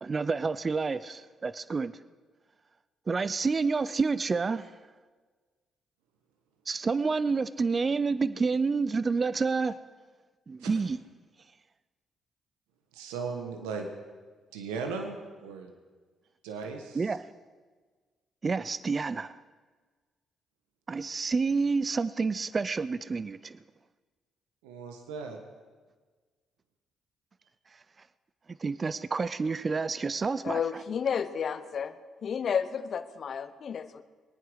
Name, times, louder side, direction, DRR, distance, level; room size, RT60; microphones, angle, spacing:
voice 1, 0.0-2.0 3.1-4.7 6.7-9.8 10.5-11.0 16.9-17.3 18.4-19.4 20.9-23.6 28.6-30.8, right 4 dB, 40° right, 0.6 m, -29 dB
voice 2, 12.9-13.9 14.5-15.7 16.4-17.2 24.6-25.4, right 5 dB, 85° right, 1.4 m, -37 dB
voice 3, 30.4-31.9 32.2-34.0, left 7 dB, 60° left, 0.9 m, -31 dB
22.0 x 9.3 x 6.4 m
hypercardioid pair, 50°, 0 cm